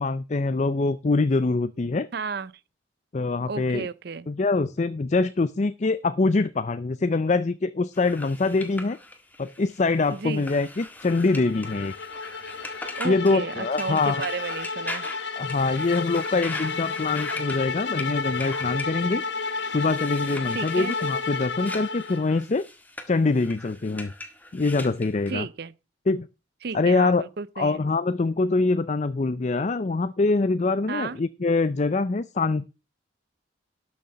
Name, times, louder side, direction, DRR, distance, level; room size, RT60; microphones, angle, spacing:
voice 1, 0.0-2.1 3.1-3.9 4.3-9.0 9.4-11.9 13.0-14.3 15.4-19.2 19.6-22.7 23.1-24.1 24.5-25.5 26.1-26.3 26.7-27.2 27.6-32.6, left 3 dB, 35° left, 0.5 m, -24 dB
voice 2, 2.1-2.5 3.5-4.3 10.1-10.5 12.9-15.1 20.5-20.9 25.3-25.7 26.6-27.8 30.9-31.2, right 5 dB, 55° right, 0.5 m, -33 dB
sound 1, 7.9-25.4, left 2 dB, 10° left, 1.6 m, -41 dB
sound 2, 11.1-22.4, left 4 dB, 65° left, 1.4 m, -32 dB
12.5 x 6.5 x 5.5 m
head